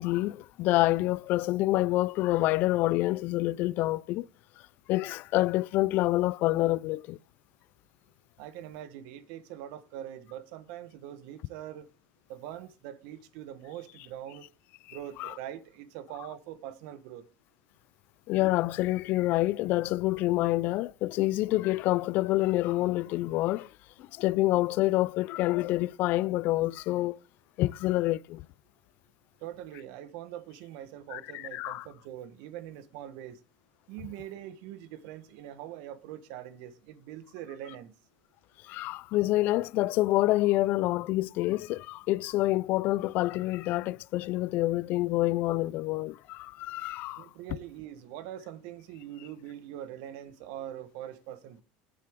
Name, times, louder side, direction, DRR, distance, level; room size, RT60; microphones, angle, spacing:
voice 1, 0.0-4.3 4.9-7.2 14.9-15.3 18.3-23.7 24.0-27.2 27.6-28.5 31.1-31.9 38.6-47.3, left 17 dB, 55° left, 0.3 m, -27 dB
voice 2, 8.4-11.9 12.3-14.5 14.9-17.2 29.4-33.4 33.9-37.9 47.2-51.6, right 11 dB, 70° right, 1.1 m, -43 dB
9.7 x 8.3 x 3.6 m
supercardioid pair, 125°, 4 cm